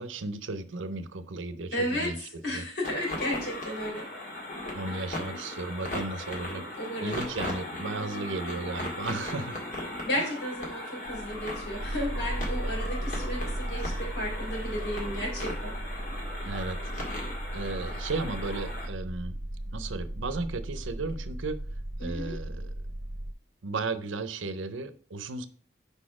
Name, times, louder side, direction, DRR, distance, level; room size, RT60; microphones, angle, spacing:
voice 1, 0.0-2.2 2.5-2.6 4.7-6.6 7.0-9.6 10.2-10.3 16.4-16.8 17.5-19.4 19.7-21.6 22.0-22.7 23.6-25.5, right 3 dB, 90° right, 12 dB, 0.6 m, -34 dB
voice 2, 1.7-4.1 4.6-5.1 6.8-7.2 10.0-15.8 22.0-22.3, left 1 dB, 65° left, -2 dB, 3.5 m, -33 dB
sound 1, 2.8-18.9, left 1 dB, 45° left, 1.8 m, -38 dB
sound 2, 11.1-23.3, right 1 dB, 50° right, 0.6 m, -36 dB
5.3 x 4.2 x 5.9 m, 0.43 s
head